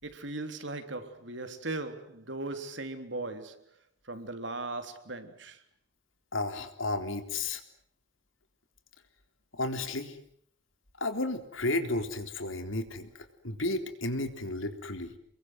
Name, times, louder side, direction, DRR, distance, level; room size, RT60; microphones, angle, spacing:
voice 1, 0.0-3.6 4.0-5.6, right 2 dB, 65° right, 3.4 m, -38 dB
voice 2, 6.3-7.6 9.5-10.2 11.0-13.1 13.4-15.1, left 2 dB, 80° left, 3.7 m, -32 dB
29.5 x 22.5 x 8.0 m
head